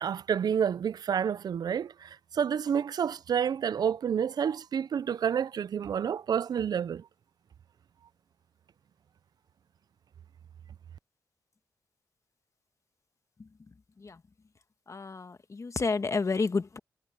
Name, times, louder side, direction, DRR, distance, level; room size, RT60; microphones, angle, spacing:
voice 1, 0.0-7.0, right 7 dB, 75° right, 0.5 m, -29 dB
voice 2, 14.9-16.8, left 4 dB, 45° left, 1.4 m, -30 dB
cardioid pair, 50°, 7 cm